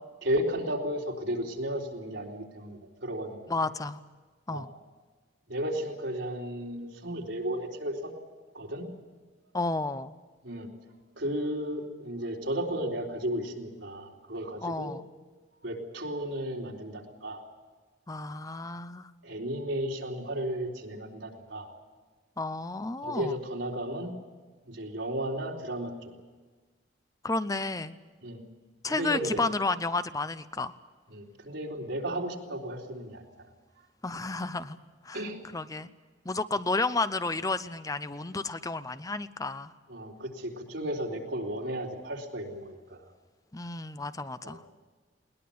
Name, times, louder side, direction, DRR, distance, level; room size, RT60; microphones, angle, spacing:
voice 1, 0.2-3.4 4.5-4.6 5.5-8.1 8.5-8.9 10.4-10.7 11.2-14.9 15.6-17.4 19.2-21.7 23.0-24.1 24.7-26.1 28.2-28.4 28.9-29.4 31.1-33.2 35.1-35.4 39.9-43.0 44.4-44.6, right 1 dB, 85° right, -1 dB, 3.9 m, -34 dB
voice 2, 3.5-4.0 4.5-4.7 9.5-10.1 14.6-15.1 18.1-19.1 22.4-23.4 27.2-27.9 28.8-30.7 34.0-34.8 35.0-35.2 35.5-35.9 36.2-39.7 43.5-44.6, left 3 dB, 20° left, 13 dB, 0.6 m, -31 dB
21.0 x 20.0 x 8.6 m, 1.3 s
head